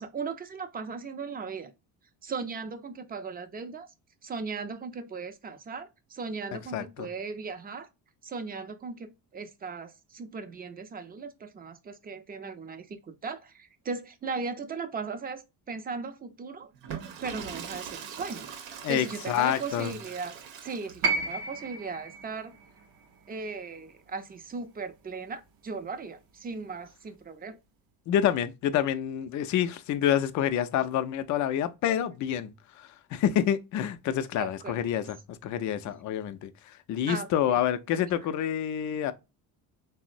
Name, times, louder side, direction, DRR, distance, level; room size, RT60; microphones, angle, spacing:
voice 1, 0.0-1.7 2.2-3.9 4.2-7.9 8.2-15.4 15.7-16.7 17.2-20.4 20.6-22.5 23.3-27.6 34.4-34.8 35.8-35.9 37.1-37.6, right 4 dB, 20° right, 0.5 m, -37 dB
voice 2, 6.7-7.1 18.8-19.9 28.1-39.1, left 10 dB, 45° left, 0.4 m, -28 dB
Water / Toilet flush, 16.7-21.3, right 7 dB, 85° right, 0.8 m, -42 dB
sound 1, 21.0-25.2 26.4-26.5, right 4 dB, 50° right, 0.7 m, -34 dB
3.5 x 2.0 x 2.5 m
supercardioid pair, 90°, 45 cm